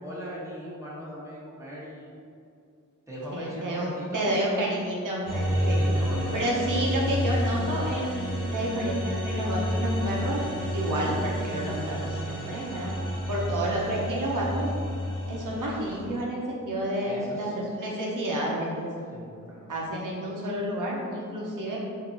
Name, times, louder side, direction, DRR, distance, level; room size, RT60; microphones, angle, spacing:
voice 1, 0.0-2.1 3.1-4.5 5.5-6.5 17.0-17.5 19.1-19.7, equal, 10° right, -7 dB, 1.1 m, -39 dB
voice 2, 3.3-5.9 6.3-10.4 10.7-12.9 13.3-14.7 15.3-18.9 19.7-21.8, right 1 dB, 70° right, -4 dB, 0.8 m, -30 dB
sound 1, 5.3-16.1, equal, 80° left, 1.1 m, -30 dB
4.5 x 2.8 x 3.8 m, 2.4 s
wide cardioid pair, 130°, 32 cm